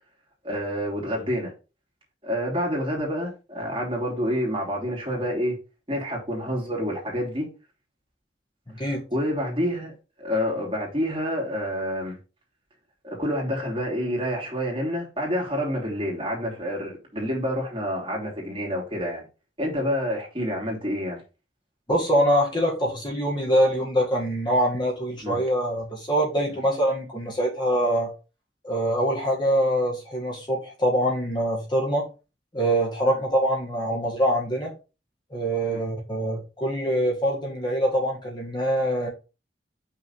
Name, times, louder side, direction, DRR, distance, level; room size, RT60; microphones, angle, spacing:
voice 1, 0.4-1.5 2.2-5.6 5.9-7.5 8.8-12.2 13.0-19.2 19.6-21.2 25.2-25.4 26.5-26.6 33.0-33.2 35.6-35.8, equal, 30° right, 2.9 m, -28 dB
voice 2, 8.7-9.0 21.9-28.1 28.6-32.0 32.5-34.7 35.3-39.1, equal, 25° left, 1.7 m, -24 dB
5.8 x 3.9 x 5.5 m
head